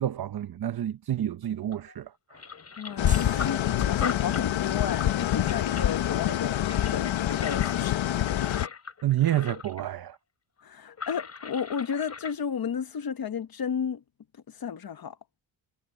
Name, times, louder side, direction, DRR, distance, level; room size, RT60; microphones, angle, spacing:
voice 1, 0.0-2.4 9.0-10.2, right 12 dB, 50° right, 0.7 m, -29 dB
sound 1, 1.7-1.9 2.3-9.9 10.1-10.2 10.9-12.3, left 5 dB, 30° left, 3.5 m, -40 dB
voice 2, 2.8-8.1 10.6-14.0 14.5-15.4, left 7 dB, 50° left, 1.3 m, -33 dB
sound 2, 3.0-8.7, left 12 dB, 75° left, 1.0 m, -26 dB
sound 3, 3.1-4.6, right 4 dB, 15° right, 1.3 m, -46 dB
wide cardioid pair, 155°, 47 cm